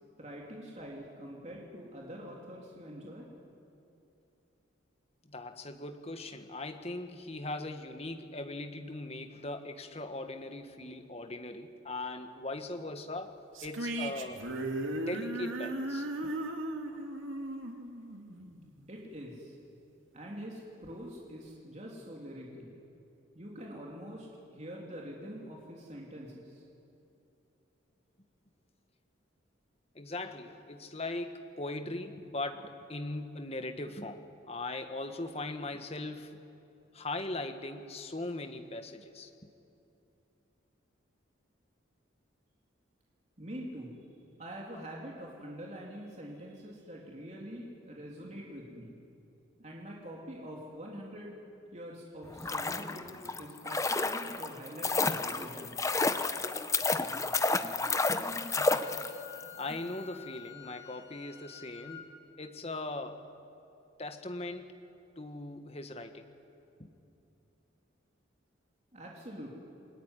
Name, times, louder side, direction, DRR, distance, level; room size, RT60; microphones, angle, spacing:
voice 1, 0.2-3.2 18.9-19.6 20.1-22.7 23.3-26.6 43.4-43.9 44.4-48.9 49.6-51.3 51.7-55.8 68.9-69.5, equal, 35° right, -2 dB, 3.2 m, -45 dB
voice 2, 5.2-13.4 13.6-14.5 15.0-16.3 29.9-36.4 36.9-39.3 58.0-62.1 62.4-63.3 64.0-64.8 65.2-66.3 66.8-66.9, left 2 dB, 30° left, 7 dB, 1.5 m, -40 dB
sound 1, 13.6-18.9, right 1 dB, 80° right, 2.4 m, -37 dB
sound 2, 52.3-59.4 59.7-59.8, left 3 dB, 15° left, 0.8 m, -31 dB
Wind instrument woodwind instrument, 58.2-62.1, left 12 dB, 20° right, 3.9 m, -50 dB
28.5 x 21.0 x 9.9 m, 2.8 s
head